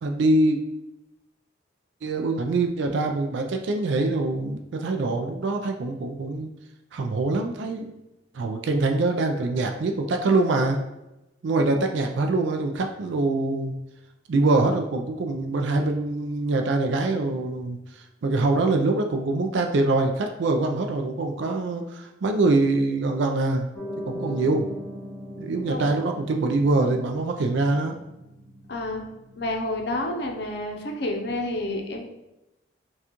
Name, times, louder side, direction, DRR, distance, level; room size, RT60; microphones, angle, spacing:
voice 1, 0.0-0.6 2.0-6.5 6.9-7.9 8.3-10.8 11.4-13.7 14.3-17.8 18.2-23.7 24.1-24.7 25.4-28.0, right 2 dB, 75° right, 4 dB, 0.4 m, -24 dB
Piano, 23.7-30.3, equal, ahead, 0.9 m, -39 dB
voice 2, 28.7-29.1 29.4-32.1, left 1 dB, 60° left, 2 dB, 0.6 m, -30 dB
5.9 x 2.3 x 2.9 m, 0.94 s
head